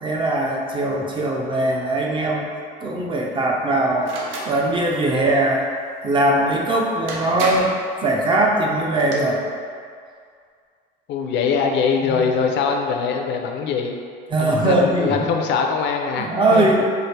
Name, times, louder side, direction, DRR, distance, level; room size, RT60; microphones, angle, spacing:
voice 1, 0.0-2.5 2.8-4.1 4.4-5.7 6.0-7.7 8.0-9.4 12.0-12.2 14.3-15.2 16.1-16.8, right 1 dB, 25° right, -1 dB, 0.5 m, -20 dB
sound 1, 4.0-4.5 6.6-6.7 7.1-7.8 8.8-9.2, right 2 dB, 85° right, 0.7 m, -30 dB
voice 2, 11.1-14.0 14.4-16.7, left 5 dB, 65° left, 3 dB, 0.4 m, -22 dB
4.6 x 2.4 x 3.2 m, 2.2 s
cardioid pair, 135°, 20 cm